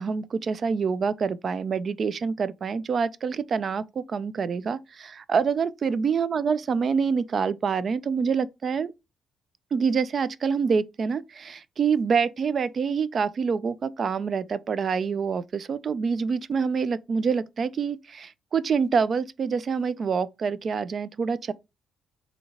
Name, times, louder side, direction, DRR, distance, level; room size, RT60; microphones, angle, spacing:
voice 1, 0.0-8.9 9.7-21.5, right 5 dB, 50° right, 0.3 m, -26 dB
4.2 x 2.7 x 2.9 m
cardioid pair, 90°, 0 cm